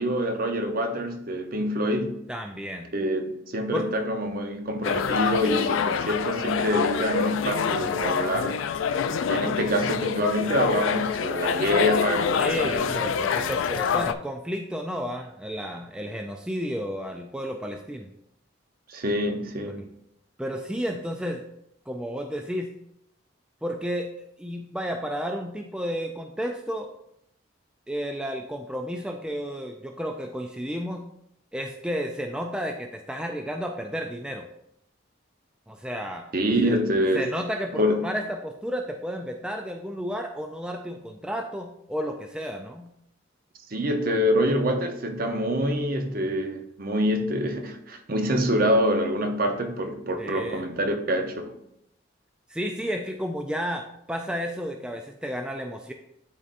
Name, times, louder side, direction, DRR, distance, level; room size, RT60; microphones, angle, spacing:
voice 1, 0.0-2.2 2.9-8.7 9.1-12.4 12.6-12.9 18.9-19.8 36.3-37.3 37.7-38.1 43.7-51.5, equal, 45° right, 5 dB, 0.7 m, -26 dB
voice 2, 2.3-2.9 3.7-3.9 12.4-18.1 19.7-19.9 20.4-21.4 21.9-22.7 23.6-24.1 24.4-26.9 27.9-31.1 31.5-34.5 35.7-36.3 36.6-36.8 37.1-42.9 50.2-50.7 52.5-55.9, equal, 5° right, 3 dB, 0.3 m, -32 dB
sound 1, 4.8-14.1, left 6 dB, 75° left, 0.4 m, -26 dB
11.0 x 4.0 x 2.5 m, 0.75 s
head